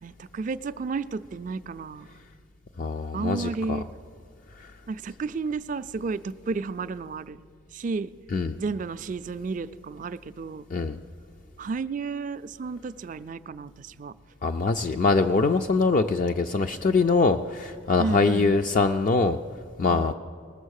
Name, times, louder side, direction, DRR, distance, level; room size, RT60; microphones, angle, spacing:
voice 1, 0.0-2.1 3.1-3.9 4.9-7.4 7.7-8.1 8.6-10.7 11.6-14.1 18.0-18.6 19.9-20.1, right 4 dB, 40° right, 13 dB, 0.3 m, -32 dB
voice 2, 2.8-3.8 4.6-4.7 8.3-8.6 10.7-11.0 14.4-19.4 19.8-20.1, left 4 dB, 40° left, 6 dB, 0.3 m, -23 dB
19.5 x 7.0 x 6.4 m, 2.4 s
head